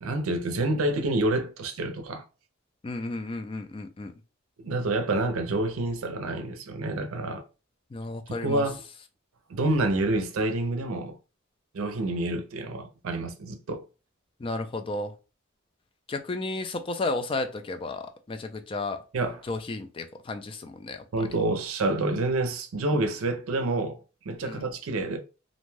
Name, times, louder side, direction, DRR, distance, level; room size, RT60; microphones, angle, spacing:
voice 1, 0.0-2.2 4.6-7.4 8.4-8.8 9.5-11.2 11.7-13.8 19.1-19.5 21.1-24.0 24.3-25.2, right 2 dB, 90° right, 0.5 m, -28 dB
voice 2, 2.8-4.1 7.9-8.6 14.4-15.1 16.1-19.0 19.5-21.3 24.4-24.7, left 2 dB, 25° left, 0.3 m, -33 dB
2.5 x 2.2 x 3.1 m
head